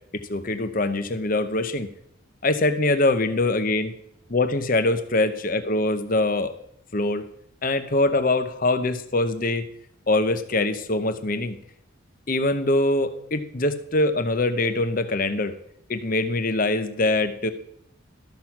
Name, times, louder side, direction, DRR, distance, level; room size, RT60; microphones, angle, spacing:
voice 1, 0.1-1.9 2.4-3.9 4.3-6.6 6.9-7.2 7.6-9.6 10.1-11.6 12.3-15.5 15.9-17.5, left 2 dB, 40° left, 9 dB, 0.8 m, -23 dB
13.0 x 6.1 x 5.8 m, 0.74 s
head